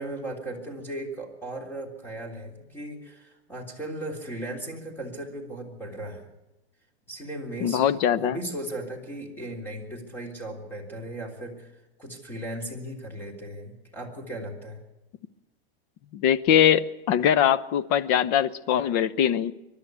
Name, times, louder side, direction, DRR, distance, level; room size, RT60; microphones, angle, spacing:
voice 1, 0.0-6.3 7.1-11.7 12.0-14.8, right 1 dB, 5° left, 2 dB, 3.5 m, -37 dB
voice 2, 7.6-8.4 16.1-19.5, left 9 dB, 35° left, 16 dB, 0.8 m, -22 dB
23.5 x 12.0 x 9.5 m, 0.98 s
supercardioid pair, 155°, 32 cm